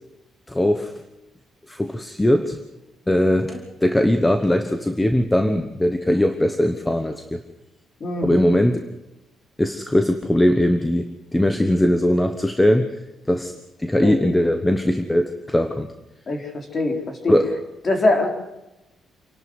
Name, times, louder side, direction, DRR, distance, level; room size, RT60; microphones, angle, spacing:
voice 1, 0.5-0.9 1.7-2.6 3.1-7.4 8.2-8.8 9.6-12.9 13.3-13.5 13.8-15.9 17.3-17.6, left 1 dB, 10° left, 7 dB, 1.1 m, -20 dB
voice 2, 8.0-8.5 14.0-14.1 16.3-17.3 17.9-18.3, left 2 dB, 30° left, 3 dB, 4.2 m, -22 dB
28.0 x 12.0 x 8.0 m, 0.94 s
cardioid pair, 155°, 0 cm